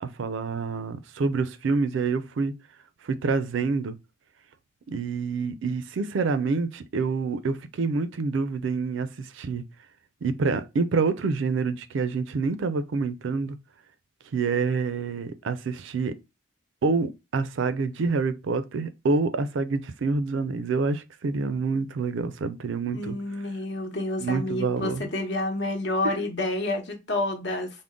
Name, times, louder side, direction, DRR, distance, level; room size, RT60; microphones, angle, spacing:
voice 1, 0.0-2.5 3.0-3.9 4.9-9.6 10.2-13.6 14.3-16.1 16.8-23.2 24.2-25.1, right 4 dB, 75° right, 0.4 m, -27 dB
voice 2, 22.9-27.7, left 2 dB, 60° left, 0.9 m, -29 dB
3.6 x 2.1 x 3.6 m
head